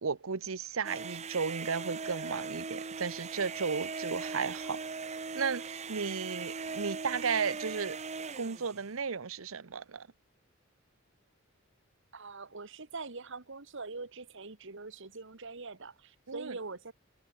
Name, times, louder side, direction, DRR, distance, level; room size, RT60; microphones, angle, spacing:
voice 1, 0.0-8.0 8.4-10.1 16.3-16.5, right 5 dB, 85° right, 0.9 m, -34 dB
sound 1, 0.8-8.8, right 4 dB, 35° right, 1.1 m, -39 dB
voice 2, 12.1-16.9, right 3 dB, 65° right, 1.7 m, -43 dB
head